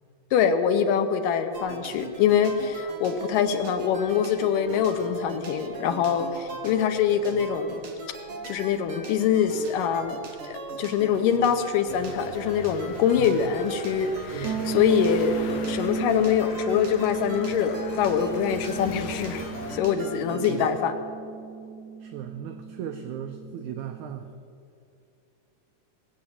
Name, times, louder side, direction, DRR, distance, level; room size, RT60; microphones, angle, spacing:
voice 1, 0.3-7.8 8.5-19.4 19.7-21.0, left 7 dB, 90° left, 7 dB, 2.5 m, -24 dB
sound 1, 1.5-20.7, right 3 dB, 55° right, 1.7 m, -40 dB
sound 2, 11.9-19.8, left 5 dB, 60° left, 1.9 m, -42 dB
voice 2, 14.3-14.7 20.4-20.6 22.0-24.3, right 9 dB, 75° right, 6 dB, 1.8 m, -36 dB
sound 3, 14.4-24.1, right 6 dB, 35° right, 3.4 m, -35 dB
18.5 x 8.0 x 7.2 m, 2.5 s
omnidirectional pair, 3.9 m